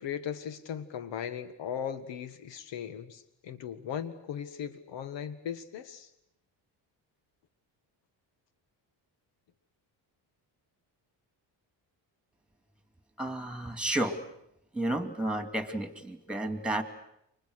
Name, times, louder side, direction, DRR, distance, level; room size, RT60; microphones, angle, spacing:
voice 1, 0.0-6.1, left 8 dB, 80° left, 11 dB, 1.8 m, -38 dB
voice 2, 13.2-14.1 14.7-16.8, right 1 dB, ahead, 8 dB, 2.5 m, -31 dB
29.5 x 25.5 x 6.6 m, 0.78 s
cardioid pair, 130°, 44 cm